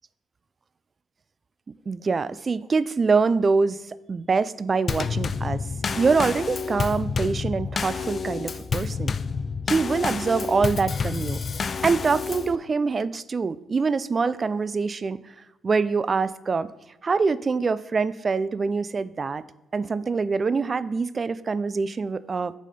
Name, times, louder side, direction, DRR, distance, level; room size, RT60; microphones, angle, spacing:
voice 1, 1.9-3.8 4.1-5.6 5.9-9.1 9.7-11.4 11.8-15.2 15.6-16.7 17.0-19.4 19.7-22.5, right 4 dB, 35° right, 16 dB, 0.3 m, -24 dB
Drum kit / Snare drum / Bass drum, 4.9-12.6, left 5 dB, 40° left, 0.3 m, -29 dB
6.3 x 4.2 x 5.1 m, 0.94 s
cardioid pair, 90°, 0 cm